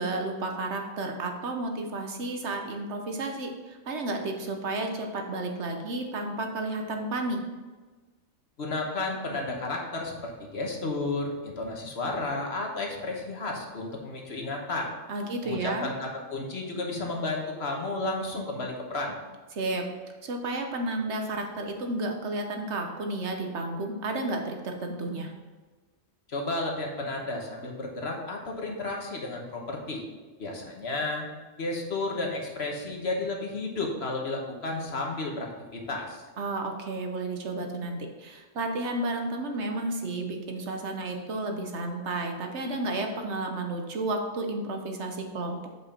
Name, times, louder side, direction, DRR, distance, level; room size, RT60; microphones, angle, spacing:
voice 1, 0.0-7.4 15.1-15.9 19.5-19.8 20.2-25.3 36.4-45.7, right 2 dB, 65° right, 3 dB, 1.2 m, -32 dB
voice 2, 8.6-14.9 15.4-19.1 26.3-30.0 30.4-31.3 31.6-36.2, left 2 dB, 55° left, 1 dB, 1.4 m, -32 dB
8.1 x 5.3 x 4.2 m, 1.3 s
omnidirectional pair, 1.3 m